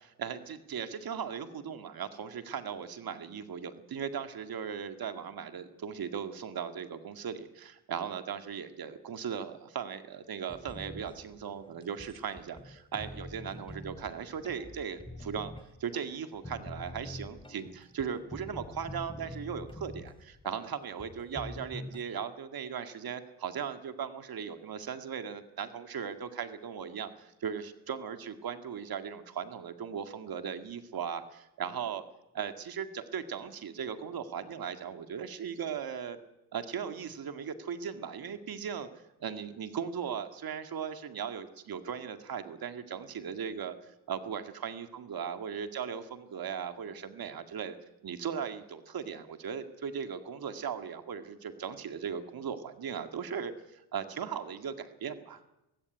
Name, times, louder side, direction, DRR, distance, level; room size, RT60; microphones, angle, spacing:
voice 1, 0.2-15.5 15.8-32.0 32.3-36.2 36.5-38.9 39.2-43.8 44.1-47.8 48.0-55.4, right 7 dB, 55° right, 8 dB, 2.0 m, -38 dB
sound 1, 10.5-22.0, left 1 dB, 10° left, 2.8 m, -46 dB
19.5 x 16.0 x 9.6 m, 0.91 s
cardioid pair, 80°, 42 cm